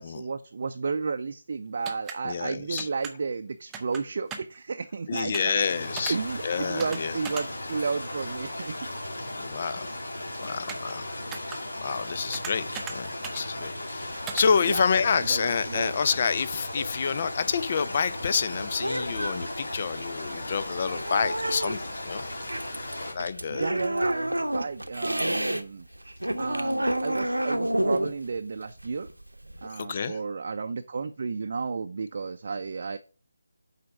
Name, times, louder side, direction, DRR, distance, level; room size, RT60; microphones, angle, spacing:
voice 1, 0.0-5.5 6.1-8.8 14.7-14.8 15.1-15.9 23.5-25.9 26.4-29.1 29.6-33.0, right 4 dB, 45° right, 0.6 m, -32 dB
sound 1, 1.8-2.2 2.8-3.1 3.7-4.0 4.3-4.6 5.3-5.5 6.0-6.1 6.8-7.0 7.2-7.4 10.7-10.9 11.3-11.6 12.3-12.9 13.2-13.4 14.3-14.4, right 6 dB, 10° right, 0.8 m, -37 dB
voice 2, 2.2-2.9 5.1-6.2 6.4-7.2 9.4-10.0 10.4-11.1 11.4-22.2 23.1-23.8 29.7-30.2, left 6 dB, 35° left, 0.6 m, -28 dB
sound 2, 5.6-23.1, left 1 dB, 70° left, 3.3 m, -36 dB
sound 3, 17.5-25.6 25.9-29.7, right 1 dB, 90° right, 0.9 m, -30 dB
7.8 x 5.0 x 5.1 m
figure-of-eight pair, 155°, 0 cm